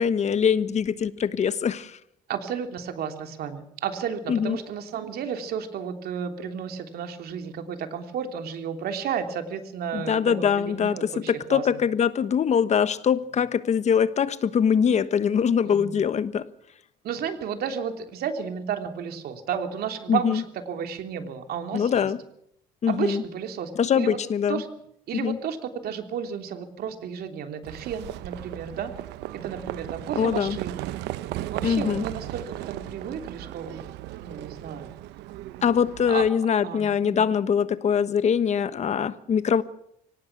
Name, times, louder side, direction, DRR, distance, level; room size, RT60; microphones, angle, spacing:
voice 1, 0.0-2.0 4.3-4.6 9.9-16.4 20.1-20.4 21.7-22.2 22.8-23.2 23.8-24.6 25.1-25.4 30.1-30.6 31.6-32.0 35.6-39.6, left 7 dB, 40° left, 1.3 m, -23 dB
voice 2, 2.3-11.7 15.6-16.0 17.0-22.1 22.9-24.2 24.5-24.7 25.1-28.9 29.3-30.9 31.5-33.9 34.2-34.9 36.1-36.2 36.6-37.2, right 7 dB, 65° right, 3.3 m, -32 dB
Livestock farm animals working animals, 27.6-36.3, right 15 dB, 85° right, 0.9 m, -36 dB
24.5 x 18.0 x 6.1 m
cardioid pair, 110°, 17 cm